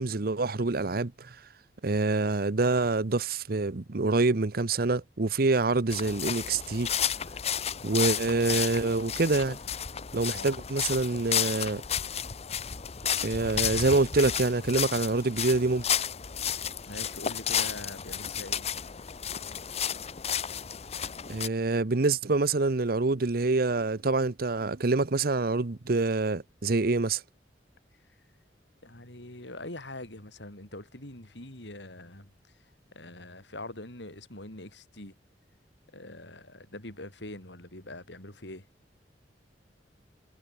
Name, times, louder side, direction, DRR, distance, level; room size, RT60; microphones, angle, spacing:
voice 1, 0.0-1.4 1.8-6.9 7.8-9.6 10.1-11.8 13.2-15.9 21.3-27.2, right 3 dB, 55° right, 0.9 m, -26 dB
sound 1, 5.9-21.5, left 8 dB, 35° left, 0.8 m, -32 dB
voice 2, 10.3-10.6 16.8-18.7 28.8-32.3 32.9-35.1 35.9-38.7, left 1 dB, 90° left, 6.4 m, -43 dB
head